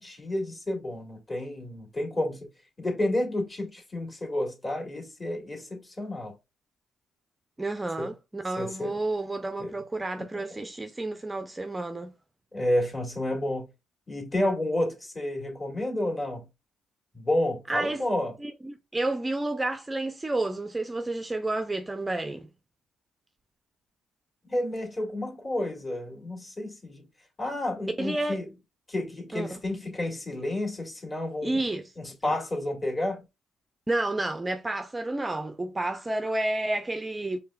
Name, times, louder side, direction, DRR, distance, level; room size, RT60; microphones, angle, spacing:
voice 1, 0.0-2.5 2.8-6.3 8.0-8.1 8.6-9.0 9.6-9.7 10.3-10.4 12.5-13.7 14.1-16.5 17.1-18.3 24.5-27.0 27.4-28.5 28.9-31.6 32.0-33.2, left 1 dB, 25° left, 1.9 m, -30 dB
voice 2, 7.6-12.1 17.7-18.0 18.4-22.5 28.0-28.4 29.3-29.6 31.4-31.9 32.2-32.3 33.9-37.4, right 2 dB, 15° right, 0.5 m, -30 dB
4.7 x 3.3 x 2.3 m
cardioid pair, 90°, 0 cm